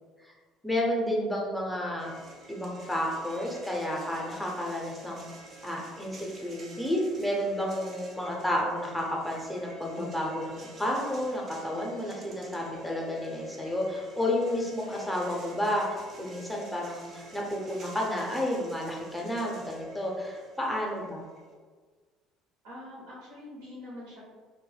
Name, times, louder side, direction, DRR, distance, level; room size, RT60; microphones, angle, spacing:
voice 1, 0.6-2.1 2.5-5.3 5.6-21.3, left 1 dB, 5° left, -2 dB, 0.6 m, -31 dB
sound 1, 2.0-21.5, right 2 dB, 45° right, 0.5 m, -49 dB
voice 2, 22.6-24.2, left 1 dB, 75° right, -6 dB, 0.9 m, -44 dB
2.1 x 2.1 x 3.2 m, 1.5 s
hypercardioid pair, 60°, 0 cm